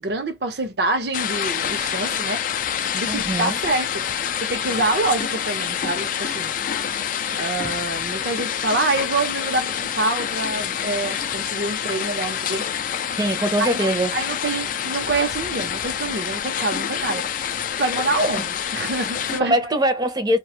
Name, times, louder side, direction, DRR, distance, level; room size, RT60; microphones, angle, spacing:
voice 1, 0.0-2.4 2.9-4.0 4.4-6.5 7.4-12.6 13.6-13.8 14.1-17.3 17.8-19.5, right 2 dB, 65° right, 0.8 m, -26 dB
sound 1, 1.1-19.4, left 9 dB, 50° left, 0.3 m, -27 dB
voice 2, 3.1-3.6 13.2-14.2 18.2-18.4 19.4-20.4, right 1 dB, 25° right, 0.6 m, -22 dB
2.5 x 2.3 x 2.8 m
head